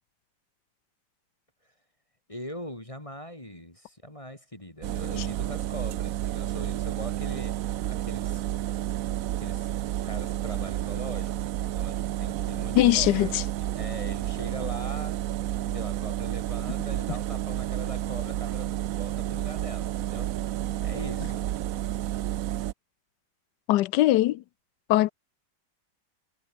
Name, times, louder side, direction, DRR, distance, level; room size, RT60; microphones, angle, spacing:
voice 1, 2.3-8.4 9.4-9.7 10.0-13.3 13.7-15.2 15.6-20.3 20.8-21.5, equal, 15° left, 3.7 m, -41 dB
sound 1, 4.8-22.7, right 13 dB, 70° right, 0.8 m, -31 dB
voice 2, 12.7-13.4 23.7-24.4 24.9-25.1, left 15 dB, 75° left, 1.1 m, -21 dB
omnidirectional pair, 2.0 m